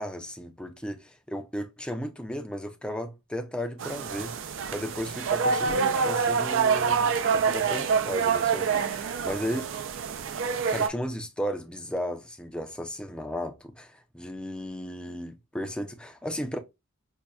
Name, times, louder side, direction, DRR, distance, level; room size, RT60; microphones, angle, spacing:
voice 1, 0.0-4.4 4.7-9.6 10.7-16.6, equal, 5° left, 0.5 m, -35 dB
sound 1, 3.8-10.9, right 6 dB, 65° right, 0.4 m, -26 dB
5.4 x 2.2 x 2.3 m
head